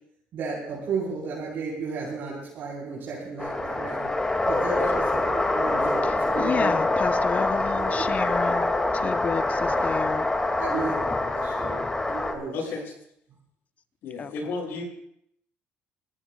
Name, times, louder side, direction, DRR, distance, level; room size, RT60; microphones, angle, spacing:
voice 1, 0.3-4.1 4.4-6.8 7.8-7.9 8.2-8.3 10.6-11.0 11.3-12.7, right 4 dB, 60° right, -7 dB, 4.8 m, -33 dB
sound 1, 3.4-12.3, left 2 dB, 15° left, 2.5 m, -25 dB
voice 2, 6.0-10.3 14.2-14.5, left 6 dB, 40° left, 10 dB, 1.0 m, -31 dB
voice 3, 10.7-11.0 12.5-12.9 14.0-14.8, left 4 dB, 65° left, -2 dB, 7.9 m, -33 dB
26.5 x 14.5 x 2.5 m, 0.74 s
supercardioid pair, 85°, 4 cm